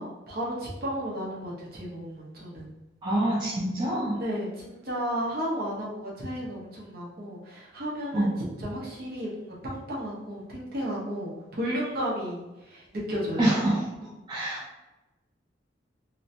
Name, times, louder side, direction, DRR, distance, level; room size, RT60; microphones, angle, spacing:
voice 1, 0.0-2.7 4.1-8.3 8.6-13.5, equal, 55° right, -5 dB, 0.9 m, -33 dB
voice 2, 3.0-4.2 8.1-8.3 13.4-13.8 14.3-14.6, right 1 dB, 25° right, -7 dB, 0.5 m, -25 dB
3.0 x 2.1 x 2.6 m, 1.0 s
head